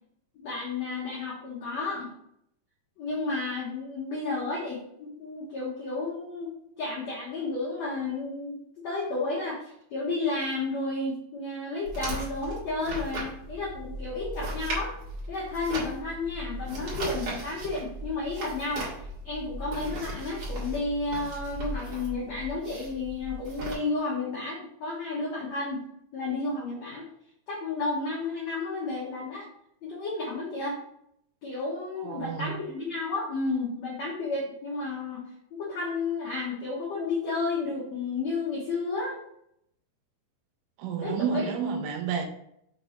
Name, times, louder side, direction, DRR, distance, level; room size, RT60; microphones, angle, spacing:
voice 1, 0.3-2.1 3.0-6.5 6.8-14.9 15.3-18.9 19.2-25.8 26.1-27.0 27.5-29.5 29.8-30.8 31.4-35.2 35.5-39.1 41.0-41.5, left 3 dB, 75° left, -5 dB, 1.6 m, -32 dB
sound 1, 11.9-23.7, right 1 dB, 50° right, 2.3 m, -37 dB
voice 2, 32.0-32.6 40.8-42.3, right 6 dB, 80° right, 3 dB, 2.8 m, -30 dB
6.9 x 2.8 x 5.0 m, 0.74 s
omnidirectional pair, 5.2 m